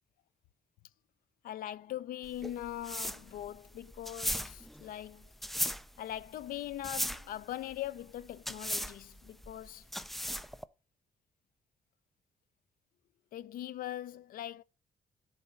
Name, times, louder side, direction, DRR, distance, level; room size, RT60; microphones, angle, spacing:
voice 1, 1.4-5.3 6.0-9.9 13.3-14.6, left 12 dB, 80° left, 0.5 m, -41 dB
sound 1, 2.2-10.6, equal, ahead, 0.3 m, -38 dB
10.5 x 4.2 x 4.0 m
cardioid pair, 125°, 14 cm